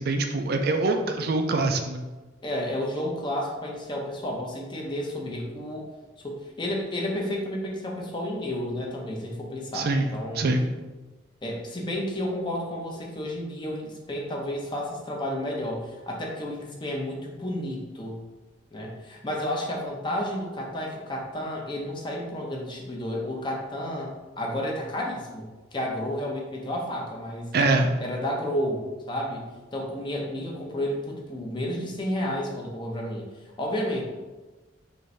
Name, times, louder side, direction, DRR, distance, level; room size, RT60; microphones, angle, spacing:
voice 1, 0.0-2.0 9.7-10.1 10.3-10.7 27.5-27.9, right 2 dB, 55° right, 4 dB, 0.4 m, -24 dB
voice 2, 2.4-5.9 6.2-10.5 11.4-18.2 18.7-25.5 25.7-27.5 28.0-33.3 33.6-34.1, left 1 dB, 25° left, -1 dB, 0.7 m, -31 dB
5.3 x 2.6 x 3.2 m, 1.2 s
head